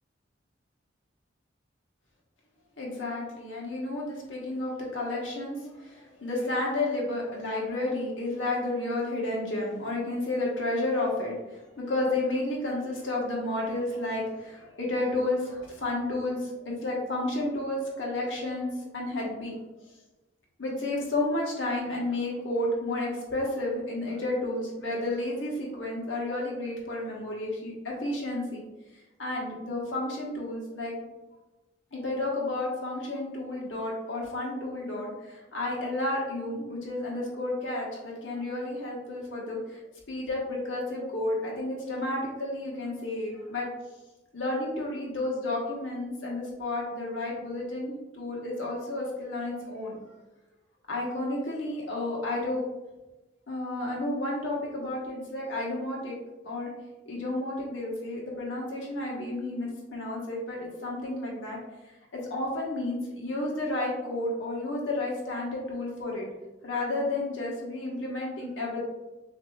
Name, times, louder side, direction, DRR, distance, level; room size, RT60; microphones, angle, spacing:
voice 1, 2.8-11.3 11.8-18.7 18.9-19.5 20.6-28.6 29.2-30.9 31.9-39.6 40.1-43.7 44.3-50.0 50.9-52.6 53.5-56.2 56.4-56.7 57.1-61.6 62.1-66.3 66.6-68.9, left 2 dB, 85° left, -3 dB, 1.3 m, -31 dB
6.5 x 2.9 x 2.3 m, 1.1 s
head